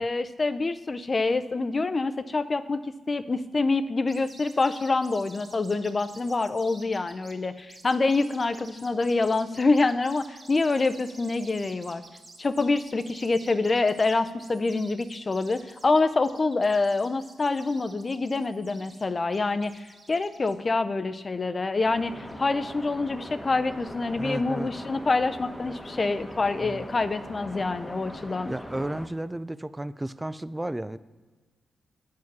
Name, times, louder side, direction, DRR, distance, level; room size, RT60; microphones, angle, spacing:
voice 1, 0.0-2.8 3.1-12.0 12.4-28.5, left 3 dB, 40° left, 11 dB, 0.6 m, -26 dB
sound 1, 4.1-20.5, right 2 dB, 30° right, 1.8 m, -50 dB
sound 2, 21.8-29.1, left 1 dB, 10° left, 1.0 m, -41 dB
voice 2, 24.2-24.7 26.6-26.8 28.5-31.0, right 1 dB, 15° right, 14 dB, 0.4 m, -33 dB
9.3 x 4.8 x 6.1 m, 1.3 s
supercardioid pair, 50°, 0 cm